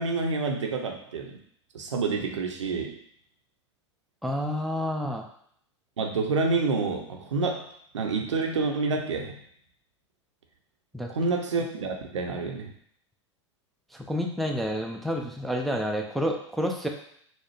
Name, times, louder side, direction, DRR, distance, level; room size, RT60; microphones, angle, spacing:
voice 1, 0.0-1.4 1.7-2.9 6.0-9.4 11.1-12.7, right 4 dB, 80° right, 3 dB, 0.6 m, -28 dB
voice 2, 4.2-5.3 10.9-11.1 13.9-16.9, equal, ahead, 2 dB, 0.4 m, -29 dB
4.1 x 2.0 x 3.2 m, 0.65 s
figure-of-eight pair, 90°, 15 cm